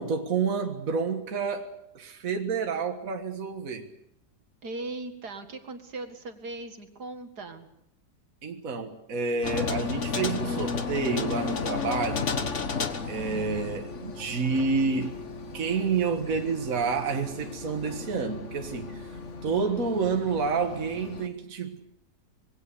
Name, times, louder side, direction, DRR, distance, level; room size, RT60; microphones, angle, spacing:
voice 1, 0.0-3.9 8.4-12.4 13.1-15.2 15.5-21.8, right 5 dB, 55° right, 2.0 m, -29 dB
voice 2, 4.6-7.7 13.1-13.5, right 2 dB, 75° right, 2.5 m, -39 dB
sound 1, 9.4-21.3, left 5 dB, 45° left, 1.7 m, -34 dB
25.5 x 21.0 x 7.0 m
omnidirectional pair, 1.7 m